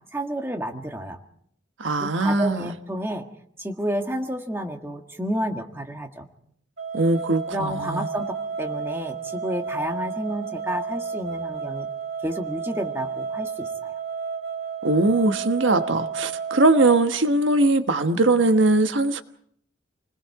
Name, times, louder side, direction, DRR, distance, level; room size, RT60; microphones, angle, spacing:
voice 1, 0.1-1.2 2.0-3.2 3.6-6.3 7.5-11.9 12.2-14.0, equal, 10° right, 4 dB, 1.7 m, -30 dB
voice 2, 1.8-2.7 6.9-8.1 14.8-19.2, right 2 dB, 85° right, 8 dB, 1.4 m, -21 dB
sound 1, 6.8-17.0, right 5 dB, 65° right, 2.8 m, -32 dB
29.0 x 20.5 x 4.9 m, 0.66 s
head